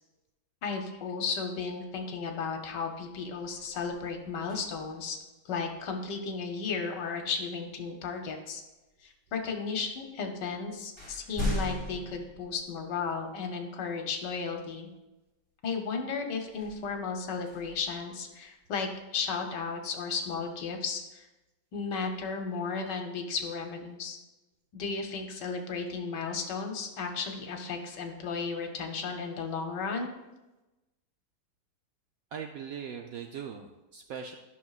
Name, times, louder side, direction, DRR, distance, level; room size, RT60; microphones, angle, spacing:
voice 1, 0.6-5.2 5.4-8.6 9.0-14.9 15.6-21.3 21.7-24.2 24.7-30.1, left 5 dB, 75° left, 4 dB, 1.6 m, -34 dB
sound 1, 2.4-2.6 3.0-5.1 7.2-7.4 8.2-9.0 9.9-10.0 10.4-13.2 13.7-13.8 16.4-18.6, left 1 dB, 15° left, 2.0 m, -39 dB
voice 2, 32.3-34.3, right 7 dB, 70° right, 4 dB, 0.8 m, -40 dB
12.0 x 6.0 x 2.4 m, 1.0 s
omnidirectional pair, 1.9 m